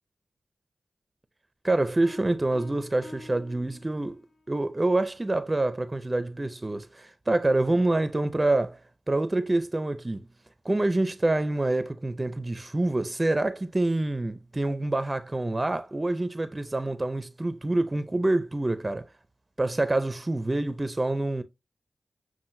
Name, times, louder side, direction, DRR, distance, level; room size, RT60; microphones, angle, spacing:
voice 1, 1.6-8.8 9.1-10.3 10.6-19.1 19.6-21.4, right 2 dB, 30° right, 0.5 m, -26 dB
sound 1, 2.0-4.4, left 2 dB, 85° left, 0.9 m, -48 dB
7.4 x 2.5 x 2.6 m
cardioid pair, 45°, 0 cm